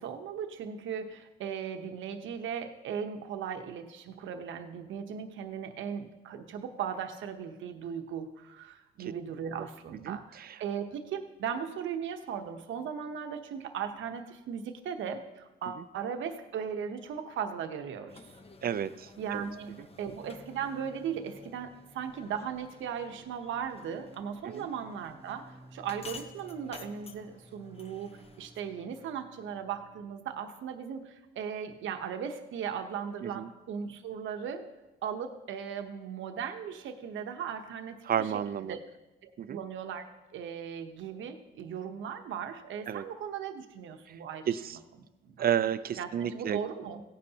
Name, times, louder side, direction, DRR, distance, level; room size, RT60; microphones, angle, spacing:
voice 1, 0.0-18.2 19.2-34.7 35.0-38.8 39.2-44.5 45.2-45.5 46.0-47.0, right 7 dB, 75° right, 6 dB, 1.0 m, -38 dB
voice 2, 10.1-10.5 18.6-19.5 24.4-24.7 33.2-33.5 38.1-38.8 39.4-39.6 42.9-43.0 44.5-44.8 45.4-46.6, right 9 dB, 50° right, 14 dB, 0.6 m, -31 dB
sound 1, 18.1-28.7, left 4 dB, 30° left, 1.0 m, -53 dB
sound 2, 20.2-30.1, right 1 dB, 20° right, 1.1 m, -55 dB
16.5 x 9.7 x 2.9 m, 1.0 s
cardioid pair, 90°, 20 cm